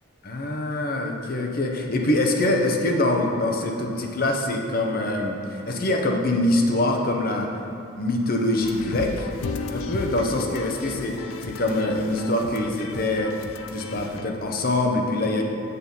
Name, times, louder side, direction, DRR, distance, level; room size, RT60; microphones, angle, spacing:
voice 1, 0.2-7.5 8.0-9.3 9.7-13.3 13.7-15.4, left 1 dB, 45° left, 2 dB, 0.9 m, -24 dB
sound 1, 8.6-14.3, left 4 dB, 85° left, 0.5 m, -34 dB
7.7 x 6.8 x 5.4 m, 2.7 s
head